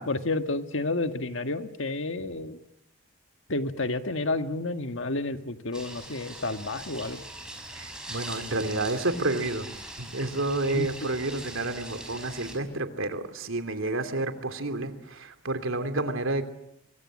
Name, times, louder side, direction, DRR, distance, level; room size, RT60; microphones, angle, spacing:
voice 1, 0.0-2.6 3.5-7.2 10.7-11.1, left 2 dB, 65° left, 8 dB, 1.7 m, -30 dB
sound 1, 5.7-12.5, right 1 dB, 5° right, 5.7 m, -41 dB
voice 2, 7.7-16.4, right 2 dB, 75° right, 9 dB, 2.9 m, -30 dB
26.0 x 24.5 x 7.5 m, 0.77 s
head